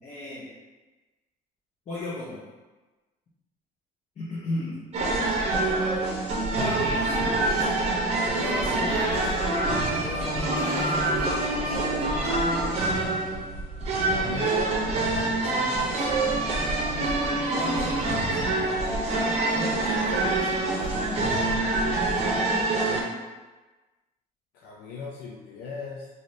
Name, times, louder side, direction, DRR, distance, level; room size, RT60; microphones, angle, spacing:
voice 1, 0.0-0.5 1.9-2.4 4.2-4.8 6.6-7.7 8.3-9.3 9.8-13.1 15.4-16.0 17.5-18.4 19.1-21.5, left 1 dB, 40° left, -8 dB, 0.7 m, -37 dB
sound 1, 4.9-23.0, right 2 dB, 40° right, 0.7 m, -26 dB
voice 2, 14.1-14.7 24.5-26.1, left 5 dB, 80° left, -3 dB, 0.4 m, -36 dB
2.7 x 2.5 x 3.1 m, 1.2 s
cardioid pair, 110°, 17 cm